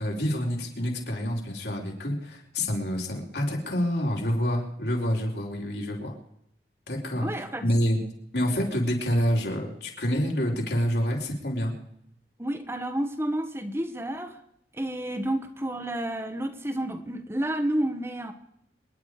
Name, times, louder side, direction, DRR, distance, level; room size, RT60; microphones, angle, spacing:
voice 1, 0.0-6.2 6.9-7.3 7.6-8.0 8.3-11.7, equal, 70° left, -1 dB, 4.7 m, -27 dB
voice 2, 7.2-7.6 12.4-14.4 14.7-18.3, right 1 dB, 15° right, 6 dB, 1.2 m, -30 dB
27.5 x 10.5 x 5.0 m, 0.75 s
head